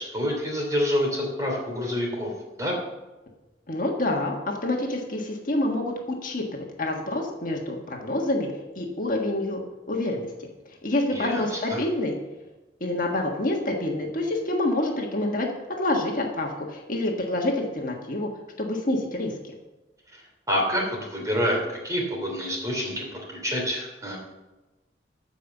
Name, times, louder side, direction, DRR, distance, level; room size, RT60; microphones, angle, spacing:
voice 1, 0.0-2.3 2.6-2.7 11.1-11.8 20.5-24.2, equal, 20° right, -1 dB, 3.0 m, -27 dB
voice 2, 3.7-5.9 6.2-8.5 8.7-9.6 9.9-10.5 10.8-12.1 12.8-15.5 15.8-18.3 18.6-19.3, left 1 dB, 45° left, 0 dB, 1.5 m, -27 dB
13.5 x 5.3 x 7.1 m, 1.1 s
head